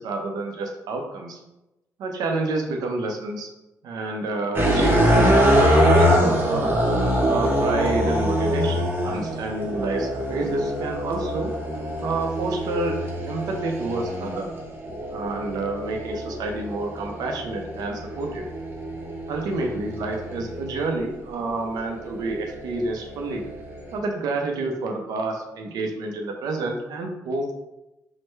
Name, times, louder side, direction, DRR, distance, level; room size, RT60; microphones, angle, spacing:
voice 1, 0.0-1.4 2.0-3.5 3.8-6.7 7.2-11.5 12.0-13.0 13.3-14.5 15.1-18.4 19.3-23.4 23.9-27.5, right 2 dB, 85° right, 2 dB, 0.5 m, -29 dB
sound 1, 4.5-20.9 21.5-24.0, equal, 35° right, 0.7 m, -24 dB
3.2 x 2.1 x 3.0 m, 0.95 s
cardioid pair, 100°, 6 cm